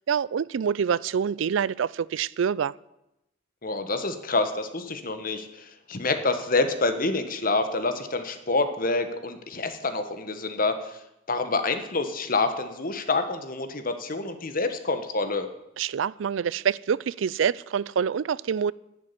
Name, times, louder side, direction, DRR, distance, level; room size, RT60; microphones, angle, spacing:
voice 1, 0.0-2.7 15.8-18.7, right 7 dB, 85° right, 0.4 m, -26 dB
voice 2, 3.6-11.0 11.3-15.5, left 3 dB, 50° left, 1.3 m, -27 dB
11.0 x 7.5 x 9.6 m
head